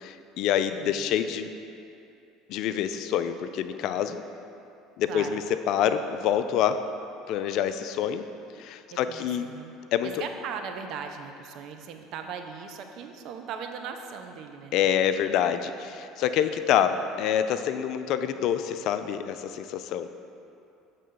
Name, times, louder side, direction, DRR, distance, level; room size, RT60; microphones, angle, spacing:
voice 1, 0.0-1.5 2.5-4.2 5.0-6.8 7.3-8.3 8.6-9.5 9.9-10.1 14.7-20.1, left 9 dB, 55° left, 10 dB, 0.3 m, -26 dB
voice 2, 0.7-1.1 5.1-5.4 8.9-9.7 10.0-14.7, right 6 dB, 55° right, 5 dB, 0.5 m, -38 dB
7.3 x 3.3 x 5.5 m, 2.7 s
figure-of-eight pair, 65°, 0 cm